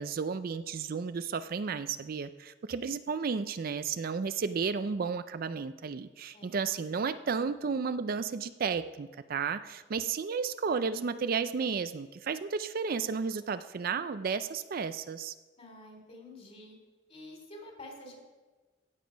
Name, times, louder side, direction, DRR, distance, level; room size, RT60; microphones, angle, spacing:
voice 1, 0.0-15.3, right 5 dB, 55° right, 12 dB, 0.4 m, -33 dB
voice 2, 15.6-16.8 17.1-18.2, left 1 dB, 35° left, 1 dB, 3.4 m, -48 dB
16.0 x 7.3 x 5.1 m, 1.2 s
head